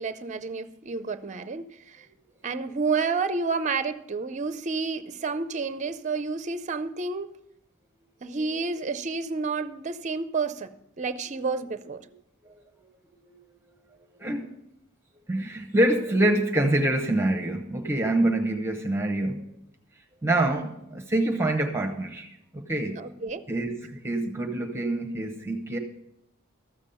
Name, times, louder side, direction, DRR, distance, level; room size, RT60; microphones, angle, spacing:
voice 1, 0.0-2.1 2.4-7.4 8.2-12.0 23.0-23.4, right 4 dB, 35° right, 12 dB, 0.5 m, -30 dB
voice 2, 15.3-19.4 20.2-22.3 22.5-23.0 23.5-25.8, right 1 dB, 10° right, 3 dB, 0.9 m, -26 dB
14.0 x 7.2 x 5.5 m, 0.80 s
head